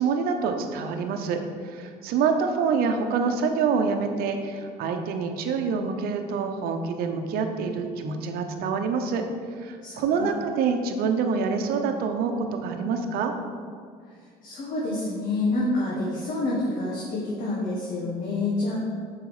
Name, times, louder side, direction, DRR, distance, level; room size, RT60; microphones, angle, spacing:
voice 1, 0.0-9.2 9.6-13.3, right 5 dB, 75° right, 5 dB, 0.9 m, -26 dB
voice 2, 9.8-10.3 14.4-18.8, left 2 dB, 60° left, -5 dB, 1.6 m, -28 dB
7.0 x 4.8 x 4.9 m, 2.1 s
supercardioid pair, 85°, 16 cm